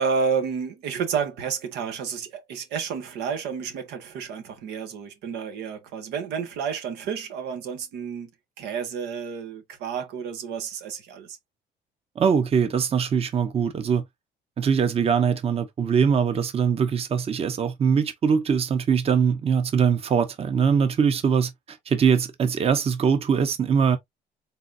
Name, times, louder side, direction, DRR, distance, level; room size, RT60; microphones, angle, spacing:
voice 1, 0.0-8.3 8.6-11.4, right 6 dB, 90° right, 1.4 m, -30 dB
voice 2, 12.2-14.0 14.6-24.0, right 6 dB, 35° right, 0.8 m, -22 dB
4.0 x 3.9 x 2.5 m
cardioid pair, 110°, 17 cm